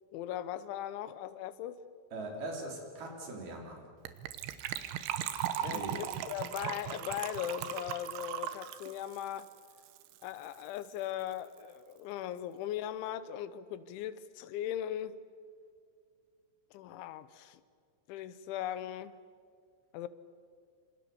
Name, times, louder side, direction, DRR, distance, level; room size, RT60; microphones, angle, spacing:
voice 1, 0.1-1.8 5.6-9.5 10.2-15.2 16.7-17.6 18.1-19.1 19.9-20.1, left 11 dB, 85° left, 14 dB, 3.3 m, -39 dB
voice 2, 2.1-3.8 5.6-6.0, right 2 dB, 55° right, 0 dB, 5.5 m, -41 dB
Gurgling / Trickle dribble / Fill (with liquid), 4.1-10.3 10.5-10.6 10.8-11.0 11.3-11.4, right 10 dB, 85° right, 3.5 m, -38 dB
26.5 x 26.5 x 7.1 m, 2.1 s
omnidirectional pair, 5.3 m